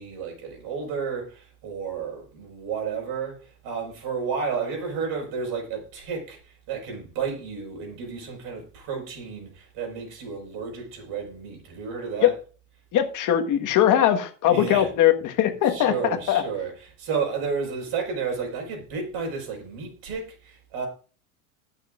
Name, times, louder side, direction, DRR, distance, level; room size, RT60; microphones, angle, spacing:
voice 1, 0.0-3.4 3.6-6.4 6.7-12.3 14.5-14.9 15.7-16.7 17.0-20.9, right 5 dB, 50° right, 5.3 m, -32 dB
voice 2, 12.9-16.4, left 11 dB, 40° left, 1.6 m, -21 dB
19.5 x 6.7 x 2.5 m
supercardioid pair, 115°, 46 cm